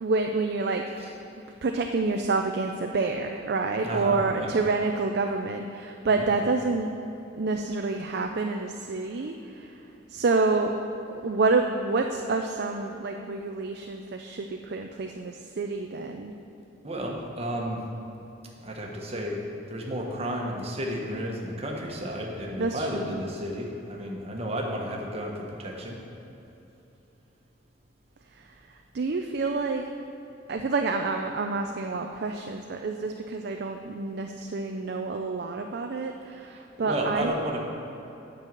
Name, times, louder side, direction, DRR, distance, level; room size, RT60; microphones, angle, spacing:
voice 1, 0.0-0.9 1.6-6.9 7.4-9.7 10.1-10.7 11.2-16.4 22.6-23.2 28.3-28.5 28.9-29.8 30.5-37.4, right 3 dB, 60° right, 4 dB, 0.5 m, -28 dB
voice 2, 3.8-4.5 6.1-6.3 16.8-17.8 18.6-26.0 36.5-37.6, equal, 35° right, -1 dB, 1.3 m, -32 dB
9.1 x 5.5 x 7.7 m, 3.0 s
head